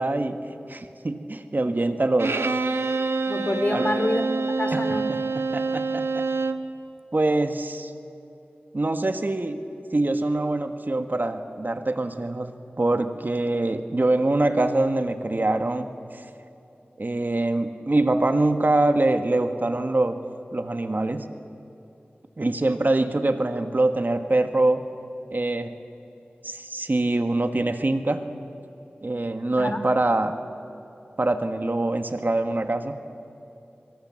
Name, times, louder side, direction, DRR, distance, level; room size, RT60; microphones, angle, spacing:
voice 1, 0.0-2.4 3.7-3.9 4.7-6.2 7.1-7.9 8.7-9.6 9.9-16.2 17.0-20.2 20.5-21.3 22.4-24.8 25.3-25.7 26.4-28.2 29.0-30.4 31.2-33.0, right 2 dB, 50° right, 8 dB, 1.5 m, -24 dB
Bowed string instrument, 2.2-6.7, right 3 dB, 80° right, 1.0 m, -26 dB
voice 2, 3.3-4.2 4.6-5.1 29.6-29.8, left 1 dB, 40° left, 8 dB, 2.5 m, -26 dB
24.5 x 24.0 x 7.6 m, 2.8 s
wide cardioid pair, 45°, 4 cm